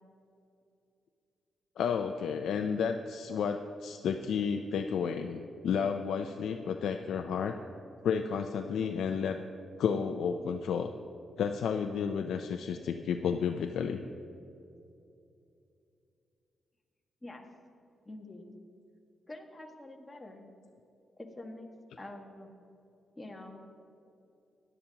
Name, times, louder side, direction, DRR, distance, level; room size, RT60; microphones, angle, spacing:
voice 1, 1.8-7.6 8.0-9.4 9.8-10.9 11.4-14.1, left 6 dB, 80° left, 5 dB, 0.5 m, -31 dB
voice 2, 18.0-18.5 19.3-20.5 21.2-21.7 22.0-22.5 23.1-23.8, left 2 dB, 20° left, 2 dB, 1.6 m, -46 dB
17.0 x 11.0 x 2.9 m, 2.7 s
cardioid pair, 80°, 0 cm